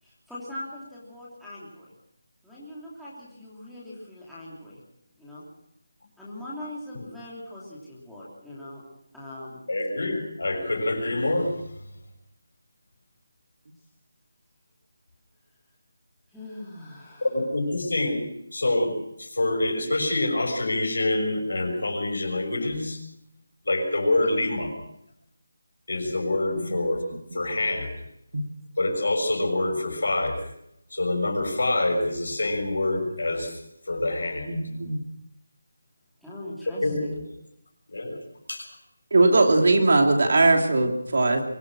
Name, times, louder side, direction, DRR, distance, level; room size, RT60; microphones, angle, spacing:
voice 1, 0.0-1.9 2.4-4.8 5.2-5.4 6.2-8.8 9.1-9.6 16.3-17.3 36.2-37.1, left 1 dB, ahead, -11 dB, 3.0 m, -41 dB
voice 2, 9.7-11.5 17.2-18.2 18.5-23.0 23.6-24.7 25.9-27.0 27.3-27.9 28.8-30.4 30.9-33.5 33.9-34.5 36.8-37.2 37.9-38.2 38.5-38.7, left 2 dB, 75° left, 5 dB, 6.3 m, -26 dB
voice 3, 34.5-35.0 39.1-41.4, right 2 dB, 50° right, 4 dB, 2.9 m, -20 dB
23.5 x 18.0 x 6.2 m, 0.78 s
figure-of-eight pair, 180°, 0 cm